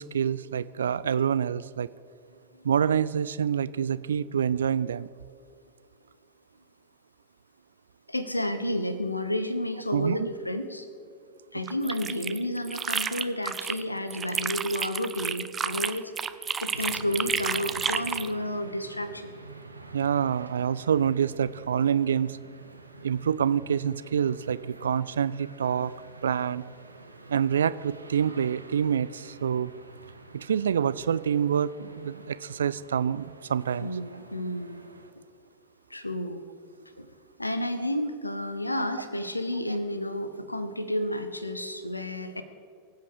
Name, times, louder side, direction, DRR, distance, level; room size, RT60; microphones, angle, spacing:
voice 1, 0.0-1.9 2.6-5.1 9.9-10.3 19.9-22.4 23.0-25.9 26.2-26.6 27.3-29.7 30.3-34.0, right 8 dB, 65° right, 17 dB, 0.4 m, -27 dB
voice 2, 8.1-10.9 11.5-16.1 16.6-19.3 33.8-34.8 35.9-36.4 37.0-37.1 37.4-42.4, left 1 dB, 85° left, 11 dB, 0.9 m, -31 dB
sound 1, 11.7-13.8 14.1-18.3, right 6 dB, 20° right, 0.6 m, -31 dB
sound 2, 16.7-35.1, right 3 dB, 80° right, 1.0 m, -48 dB
24.0 x 8.3 x 4.9 m, 2.4 s
figure-of-eight pair, 90°, 0 cm